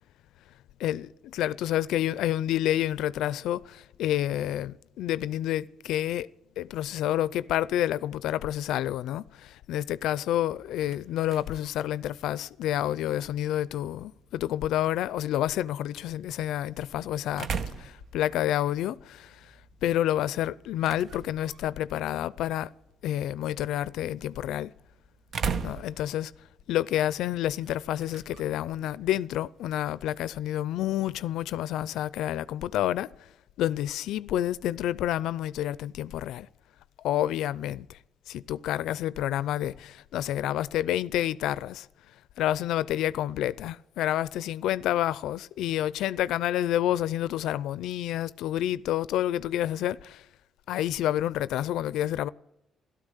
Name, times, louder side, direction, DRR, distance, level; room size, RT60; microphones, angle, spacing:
voice 1, 0.8-6.3 6.6-17.5 17.8-19.5 19.8-22.7 23.0-24.7 25.6-26.3 26.7-33.1 33.6-36.5 37.0-38.0 38.3-41.9 42.4-50.3 50.7-52.3, left 12 dB, 85° left, 0.4 m, -29 dB
sound 1, 10.5-30.3, right 5 dB, 60° right, 1.0 m, -42 dB
13.5 x 13.0 x 8.1 m
cardioid pair, 90°, 0 cm